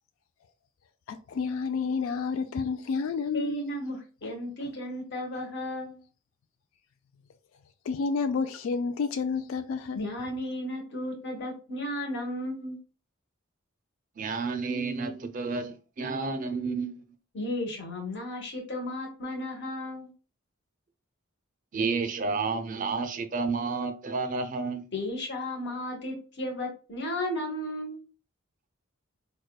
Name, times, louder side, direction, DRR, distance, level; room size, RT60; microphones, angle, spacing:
voice 1, 1.1-3.6 7.9-10.0, left 5 dB, 80° left, 0.3 m, -30 dB
voice 2, 3.3-6.0 9.9-12.8 17.3-20.1 24.9-28.0, left 1 dB, 55° left, 1.2 m, -34 dB
voice 3, 14.2-17.0 21.7-24.9, right 4 dB, 40° right, 0.4 m, -30 dB
4.7 x 2.2 x 2.3 m
head